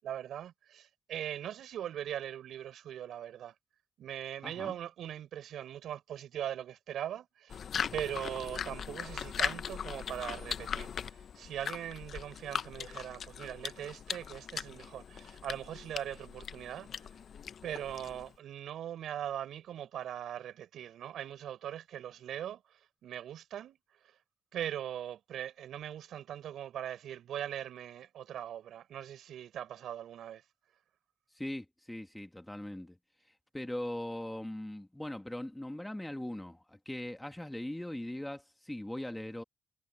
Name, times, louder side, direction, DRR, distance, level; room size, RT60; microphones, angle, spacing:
voice 1, 0.0-3.5 4.0-7.6 7.9-17.1 17.6-24.2 24.5-30.4, right 10 dB, 85° right, 6.6 m, -41 dB
voice 2, 4.4-4.7 31.4-33.0 33.5-39.4, left 1 dB, 10° left, 2.1 m, -40 dB
sound 1, 7.5-18.4, left 7 dB, 60° left, 0.8 m, -39 dB
cardioid pair, 85°, 0 cm